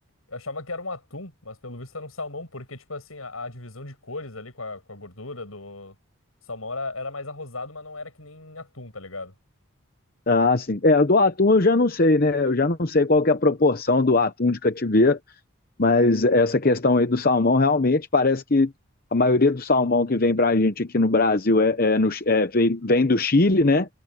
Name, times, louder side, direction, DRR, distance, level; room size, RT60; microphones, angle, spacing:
voice 1, 0.3-5.9 6.5-9.3, left 3 dB, 80° left, 7.7 m, -36 dB
voice 2, 10.3-15.2 15.8-18.7 19.1-23.9, left 3 dB, 45° left, 0.9 m, -20 dB
head